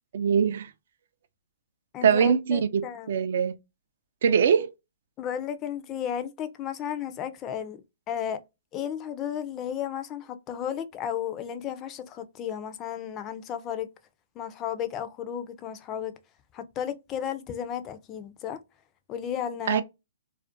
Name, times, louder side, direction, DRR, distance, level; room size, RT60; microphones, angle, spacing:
voice 1, 0.1-0.7 2.0-3.5 4.2-4.7 19.7-19.8, right 7 dB, 60° right, 0.3 m, -22 dB
voice 2, 1.9-3.1 5.2-7.8 8.1-8.4 8.7-13.9 14.4-16.1 16.5-18.6 19.1-19.8, left 9 dB, 25° left, 0.4 m, -33 dB
2.4 x 2.1 x 2.5 m
hypercardioid pair, 145°, 0 cm